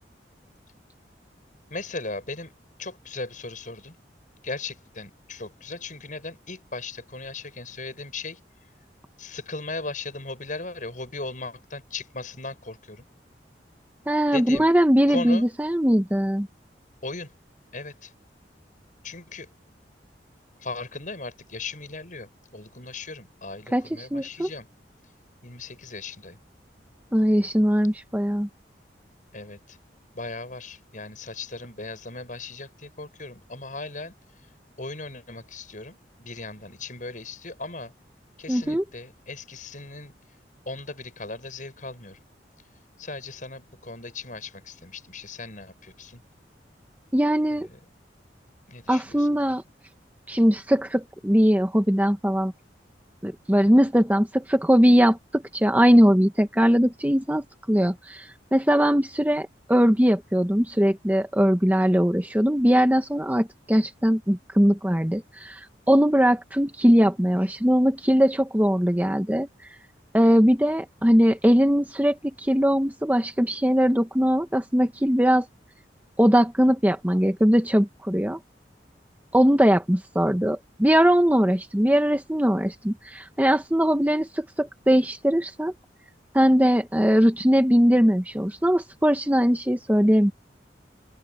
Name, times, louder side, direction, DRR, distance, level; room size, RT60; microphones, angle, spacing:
voice 1, 1.7-2.5 2.8-3.9 4.4-8.4 9.2-13.0 14.3-14.7 15.1-15.5 17.0-17.3 17.7-18.1 19.0-19.5 20.6-24.7 25.4-26.4 29.3-29.8 30.1-34.1 34.8-37.9 38.4-40.1 40.7-42.2 43.0-46.2 47.5-47.8 48.7-49.3, left 3 dB, 45° left, 7.9 m, -37 dB
voice 2, 14.1-16.5 23.7-24.5 27.1-28.5 38.5-38.8 47.1-47.7 48.9-49.6 50.3-52.5 53.2-69.5 70.1-75.5 76.2-78.4 79.3-85.7 86.3-90.3, equal, 10° right, 1.2 m, -21 dB
open air
head